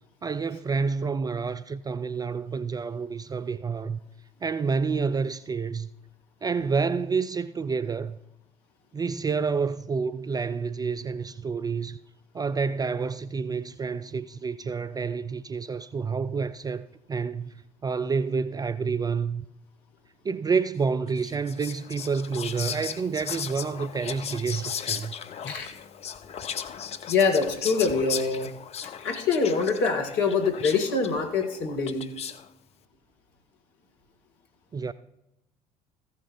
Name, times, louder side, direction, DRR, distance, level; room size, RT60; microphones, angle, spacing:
voice 1, 0.2-4.0 4.4-5.9 6.4-8.2 8.9-12.0 12.3-19.5 20.2-25.1 34.7-34.9, right 5 dB, 20° right, 0.4 m, -29 dB
Whispering, 21.2-32.5, left 8 dB, 30° left, 0.6 m, -37 dB
voice 2, 27.1-28.5 29.0-32.1, left 4 dB, 55° left, 1.7 m, -24 dB
15.0 x 5.8 x 4.5 m
figure-of-eight pair, 60°, 20 cm